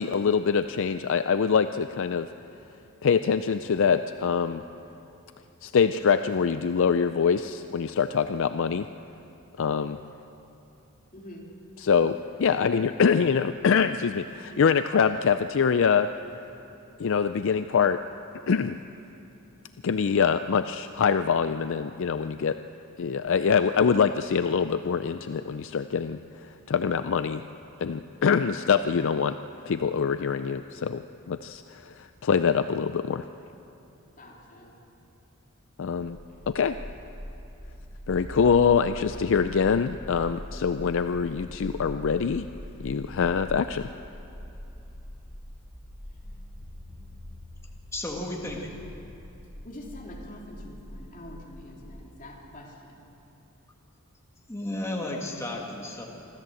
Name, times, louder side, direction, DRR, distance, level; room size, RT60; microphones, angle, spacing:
voice 1, 0.0-2.3 3.0-4.6 5.6-8.9 9.6-10.0 11.8-16.1 17.0-18.0 18.4-18.8 19.8-22.6 23.0-27.4 27.8-29.4 29.7-33.2 35.8-36.2 36.5-36.8 38.1-42.5 42.8-43.9, left 6 dB, 60° left, 11 dB, 0.4 m, -24 dB
voice 2, 11.1-11.5 34.2-34.8 49.6-53.0, left 1 dB, 40° left, -2 dB, 3.3 m, -45 dB
sound 1, 36.0-51.9, equal, 60° right, 6.8 m, -43 dB
voice 3, 47.9-48.8 54.5-56.0, left 1 dB, 15° left, -1 dB, 1.7 m, -33 dB
26.0 x 13.5 x 7.8 m, 2.9 s
head